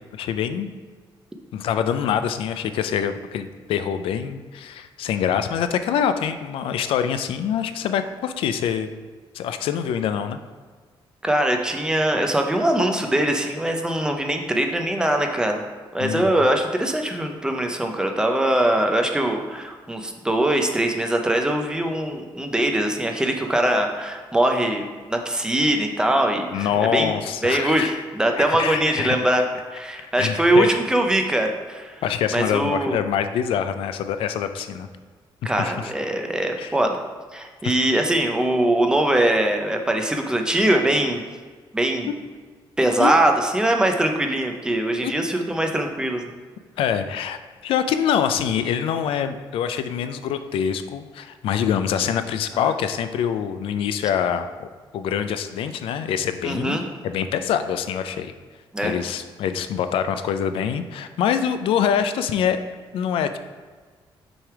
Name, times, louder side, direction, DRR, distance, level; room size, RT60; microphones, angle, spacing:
voice 1, 0.1-0.7 1.5-8.9 9.3-10.4 16.0-16.3 26.5-28.0 28.4-29.2 30.2-30.7 32.0-34.9 35.4-35.9 36.6-36.8 37.6-37.7 43.0-43.1 45.0-45.1 46.8-54.7 54.9-56.8 57.0-58.3 58.8-62.6 62.9-63.4, left 8 dB, 85° left, 9 dB, 0.4 m, -25 dB
voice 2, 11.2-15.7 15.9-27.1 27.4-29.4 29.7-32.0 32.3-33.0 35.4-37.0 37.3-41.2 41.7-42.1 42.8-46.2 52.5-52.7 56.4-56.8 58.7-59.0, right 1 dB, 10° right, 3 dB, 0.5 m, -22 dB
6.1 x 3.3 x 4.6 m, 1.5 s
cardioid pair, 155°, 9 cm